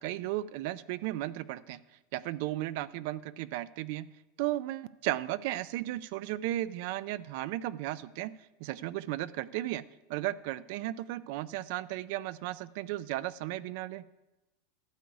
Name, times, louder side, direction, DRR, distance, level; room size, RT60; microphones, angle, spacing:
voice 1, 0.0-1.8 2.1-4.1 4.4-9.8 10.1-14.1, right 15 dB, 45° right, 18 dB, 0.4 m, -35 dB
12.5 x 8.1 x 4.8 m, 1.0 s
supercardioid pair, 180°, 0 cm